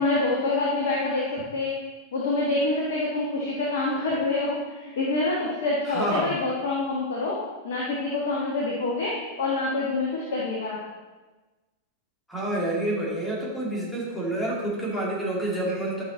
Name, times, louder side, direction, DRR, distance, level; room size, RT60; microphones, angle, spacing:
voice 1, 0.0-1.7 2.1-10.8, left 2 dB, 60° left, -4 dB, 1.5 m, -26 dB
voice 2, 5.8-6.3 12.3-16.0, right 1 dB, 5° left, -4 dB, 2.6 m, -28 dB
11.0 x 5.8 x 4.0 m, 1.2 s
figure-of-eight pair, 90°, 0 cm